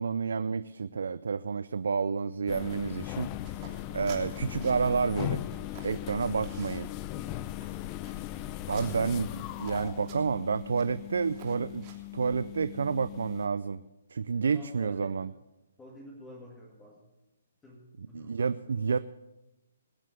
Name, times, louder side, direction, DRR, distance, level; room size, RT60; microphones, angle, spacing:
voice 1, 0.0-3.3 3.9-5.4 5.8-6.9 8.7-11.8 12.1-13.8 14.1-15.3 18.1-19.0, right 5 dB, 75° right, 14 dB, 0.4 m, -29 dB
sound 1, 2.5-13.5, left 14 dB, 30° left, 0.6 m, -38 dB
sound 2, 2.5-12.2, right 7 dB, 35° right, 3.1 m, -53 dB
voice 2, 14.5-15.2 15.8-17.1 17.6-18.7, left 1 dB, 10° left, -2 dB, 2.1 m, -50 dB
20.5 x 7.5 x 6.7 m, 0.99 s
hypercardioid pair, 140°, 0 cm